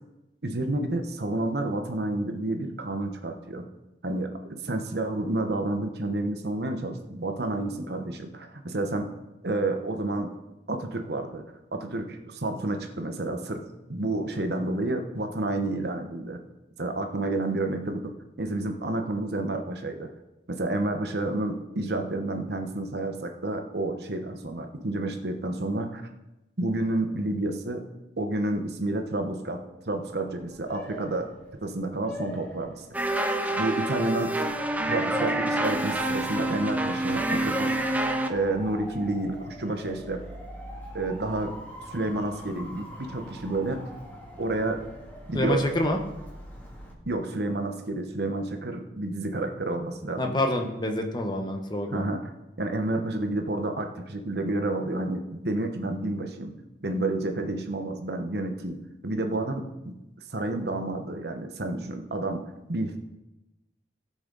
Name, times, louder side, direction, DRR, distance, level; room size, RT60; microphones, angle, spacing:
voice 1, 0.4-3.7 4.0-9.1 9.4-10.3 10.7-11.4 11.7-13.6 13.9-16.4 16.8-20.1 20.5-26.0 26.6-27.8 28.2-31.3 31.6-32.8 33.6-34.3 34.9-37.7 38.3-40.2 40.9-41.5 41.9-43.9 44.4-44.8 45.3-45.7 47.1-50.4 51.9-52.3 52.6-56.5 56.8-60.0 60.3-63.0, right 2 dB, 65° right, 5 dB, 1.1 m, -30 dB
Motor vehicle (road) / Siren, 30.1-46.9, equal, 10° left, 2.1 m, -42 dB
sound 1, 32.9-38.3, right 1 dB, 10° right, 0.6 m, -27 dB
voice 2, 45.3-46.0 50.2-52.0, left 1 dB, 25° left, 4 dB, 1.2 m, -27 dB
17.5 x 6.3 x 4.0 m, 0.99 s
head